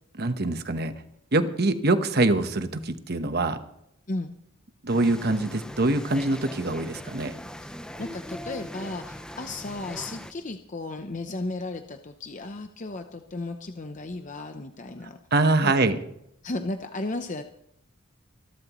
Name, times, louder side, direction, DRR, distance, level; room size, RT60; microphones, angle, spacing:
voice 1, 0.2-0.9 1.3-3.6 4.8-7.4 15.3-16.0, right 2 dB, 50° right, 9 dB, 1.1 m, -24 dB
sound 1, 4.9-10.3, equal, 5° left, 0.7 m, -40 dB
voice 2, 8.0-15.2 15.6-15.9 16.4-17.4, left 2 dB, 35° left, 6 dB, 0.7 m, -34 dB
26.0 x 12.0 x 3.1 m, 0.75 s
head